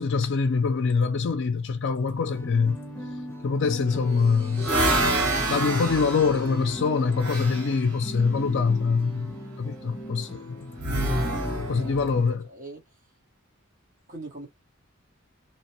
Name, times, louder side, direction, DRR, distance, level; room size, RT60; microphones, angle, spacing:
voice 1, 0.0-2.8 3.4-4.8 5.5-10.7 11.6-12.5, left 5 dB, 60° left, 0.4 m, -24 dB
sound 1, 2.2-12.2, left 1 dB, 15° left, 0.8 m, -38 dB
sound 2, 3.9-7.8 10.8-12.2, right 1 dB, 90° right, 1.4 m, -27 dB
voice 2, 12.5-12.8 14.1-14.5, right 2 dB, 40° right, 1.2 m, -40 dB
2.9 x 2.2 x 2.9 m
head